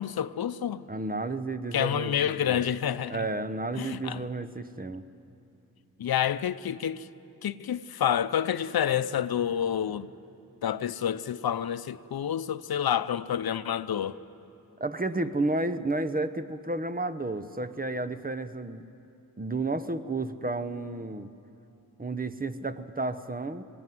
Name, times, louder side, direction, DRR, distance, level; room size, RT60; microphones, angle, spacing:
voice 1, 0.0-0.8 1.7-3.3 3.8-4.3 6.0-7.1 7.4-10.1 10.6-14.2, left 9 dB, 85° left, 0.6 m, -28 dB
voice 2, 0.9-2.6 3.1-5.0 14.8-18.8 19.4-21.3 22.0-23.6, right 2 dB, 25° right, 0.9 m, -32 dB
21.5 x 17.5 x 9.3 m
wide cardioid pair, 65°, 36 cm